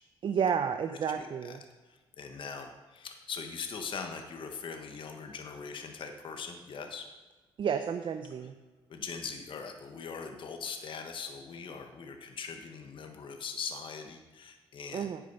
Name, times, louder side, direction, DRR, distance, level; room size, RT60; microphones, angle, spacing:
voice 1, 0.2-1.6 7.6-8.5 14.9-15.2, right 7 dB, 60° right, 8 dB, 0.7 m, -31 dB
voice 2, 1.1-1.6 1.9-7.1 8.9-15.1, left 5 dB, 60° left, 5 dB, 1.4 m, -41 dB
11.0 x 8.6 x 5.5 m, 1.2 s
cardioid pair, 90°, 10 cm